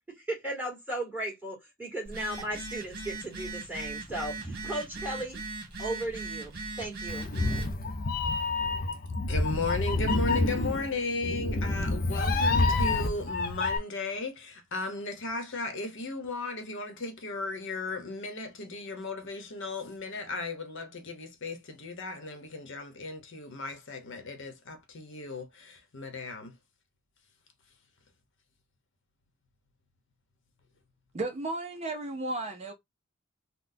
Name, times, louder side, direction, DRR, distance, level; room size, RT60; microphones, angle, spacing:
voice 1, 0.1-5.4 5.8-7.3, right 1 dB, 10° right, 1.8 m, -36 dB
Telephone, 2.0-7.7, right 3 dB, 50° right, 1.4 m, -39 dB
Meow, 7.1-13.8, left 3 dB, 45° left, 0.5 m, -28 dB
voice 2, 9.3-26.5, left 3 dB, 60° left, 0.9 m, -35 dB
voice 3, 31.1-32.7, right 2 dB, 30° right, 0.5 m, -34 dB
3.9 x 2.2 x 2.6 m
head